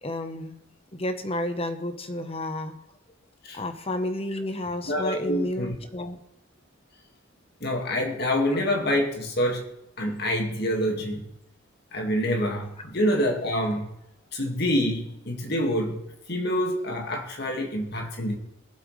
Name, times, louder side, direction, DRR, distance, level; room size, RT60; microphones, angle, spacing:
voice 1, 0.0-0.6 0.9-2.7 3.5-6.2, left 1 dB, 30° left, 1.1 m, -31 dB
voice 2, 4.9-5.7 7.6-9.7 10.0-11.3 11.9-13.9 14.3-16.0 16.3-18.4, equal, 55° left, 2.1 m, -26 dB
22.5 x 7.9 x 3.3 m
head